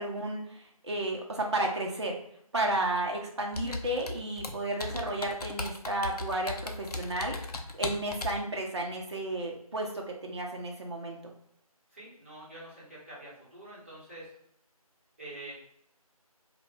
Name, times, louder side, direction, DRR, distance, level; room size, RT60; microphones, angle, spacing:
voice 1, 0.0-2.2 2.5-7.4 7.7-11.3, right 1 dB, 45° right, 0 dB, 0.4 m, -32 dB
Computer keyboard, 3.5-8.4, left 2 dB, 80° left, 0.4 m, -37 dB
voice 2, 11.9-14.4 15.2-15.5, right 1 dB, 20° right, -9 dB, 0.7 m, -46 dB
2.1 x 2.0 x 3.2 m, 0.73 s
figure-of-eight pair, 165°, 19 cm